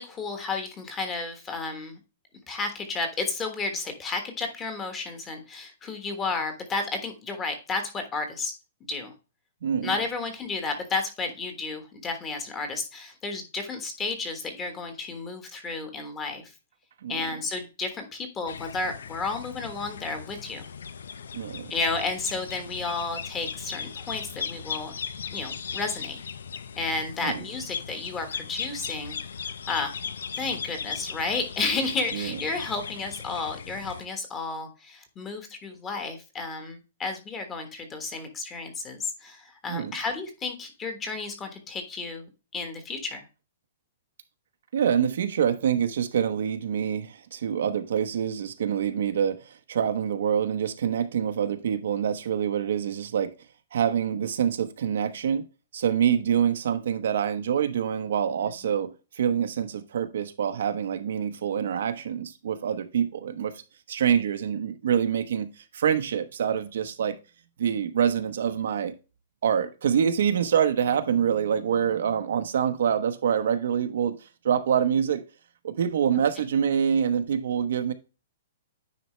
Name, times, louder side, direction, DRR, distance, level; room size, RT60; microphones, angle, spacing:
voice 1, 0.0-2.0 2.5-8.5 8.9-9.1 9.8-16.5 17.1-20.6 21.7-24.9 25.3-26.2 26.8-29.2 29.7-29.9 30.4-43.2, left 3 dB, 15° left, 1.3 m, -32 dB
voice 2, 9.6-9.9 17.0-17.3 21.3-21.7 27.2-27.4 32.1-32.3 39.7-39.9 44.7-53.3 53.7-55.4 55.7-63.5 63.9-67.2 67.6-68.9 69.4-74.2 74.4-75.2 75.6-77.9, right 8 dB, 65° right, 0.9 m, -26 dB
sound 1, 18.5-34.1, left 6 dB, 90° left, 0.6 m, -38 dB
9.6 x 4.2 x 3.1 m
hypercardioid pair, 170°, 0 cm